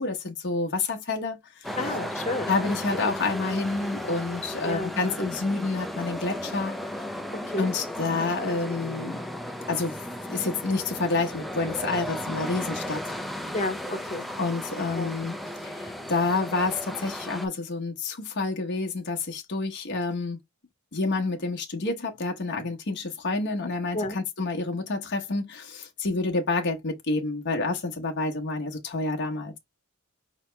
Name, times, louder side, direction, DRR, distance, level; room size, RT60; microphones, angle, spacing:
voice 1, 0.0-2.0 2.5-7.0 7.6-9.2 9.7-13.1 14.4-20.4 20.9-29.6, left 3 dB, 55° left, 0.9 m, -29 dB
sound 1, 1.6-17.5, left 1 dB, ahead, 0.6 m, -35 dB
voice 2, 1.8-2.5 2.9-3.1 4.6-5.3 7.5-7.7 13.5-14.2 14.9-15.1 23.9-24.2, left 2 dB, 30° left, 1.1 m, -31 dB
5.5 x 2.9 x 3.3 m
head